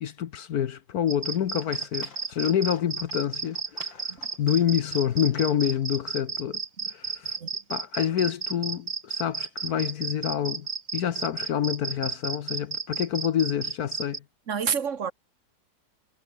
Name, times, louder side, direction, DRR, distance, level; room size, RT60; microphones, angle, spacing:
voice 1, 0.0-6.6 6.9-7.4 7.7-14.2, left 9 dB, 60° left, 1.3 m, -27 dB
sound 1, 1.1-14.2, right 4 dB, 25° right, 0.9 m, -32 dB
Livestock farm animals working animals, 1.3-6.2, left 5 dB, 85° left, 3.7 m, -52 dB
voice 2, 14.5-15.1, right 7 dB, 45° right, 1.6 m, -28 dB
omnidirectional pair, 2.0 m